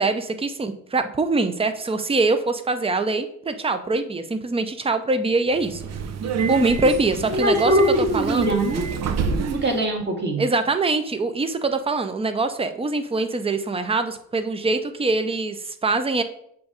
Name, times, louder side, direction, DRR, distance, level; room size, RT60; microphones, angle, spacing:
voice 1, 0.0-5.8 6.5-7.7 8.1-8.5 10.4-16.2, right 3 dB, 20° right, 9 dB, 0.6 m, -23 dB
Subway metro underground, 5.5-9.8, right 5 dB, 60° right, 0.7 m, -28 dB
voice 2, 7.3-8.9 9.3-10.4, right 1 dB, 35° right, 0 dB, 1.8 m, -22 dB
6.8 x 2.7 x 5.1 m, 0.70 s
cardioid pair, 90°, 30 cm